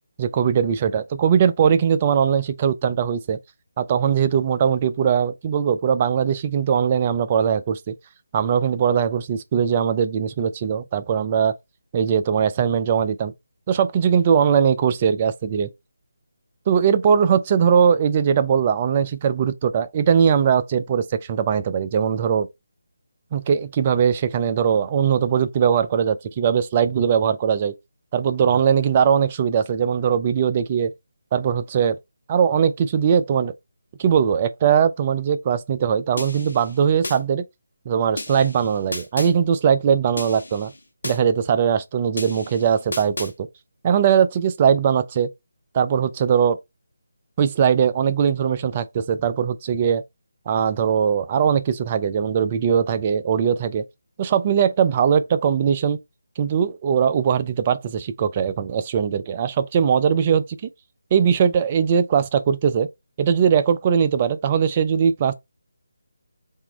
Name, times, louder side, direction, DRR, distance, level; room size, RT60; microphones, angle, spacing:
voice 1, 0.2-3.4 3.8-7.9 8.3-11.6 11.9-13.3 13.7-15.7 16.7-22.5 23.3-27.7 28.1-30.9 31.3-32.0 32.3-33.5 34.0-37.4 37.9-40.7 41.0-43.3 43.8-45.3 45.7-46.6 47.4-50.0 50.5-53.8 54.2-56.0 56.4-60.4 61.1-62.9 63.2-65.3, right 7 dB, 30° right, 0.4 m, -20 dB
sound 1, 36.2-37.2 38.2-39.3 40.2-41.2 42.2-43.3, left 2 dB, 65° left, 1.1 m, -34 dB
3.6 x 2.9 x 3.3 m
figure-of-eight pair, 155°, 0 cm